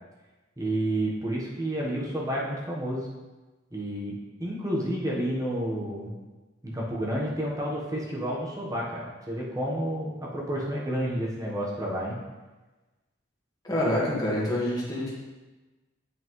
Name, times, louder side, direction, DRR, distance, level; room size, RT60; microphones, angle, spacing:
voice 1, 0.6-3.1 3.7-4.1 4.4-6.2 6.6-12.2, right 1 dB, 20° right, -4 dB, 1.1 m, -30 dB
voice 2, 13.6-15.2, left 1 dB, 20° left, -6 dB, 1.5 m, -27 dB
8.0 x 5.6 x 3.1 m, 1.2 s
head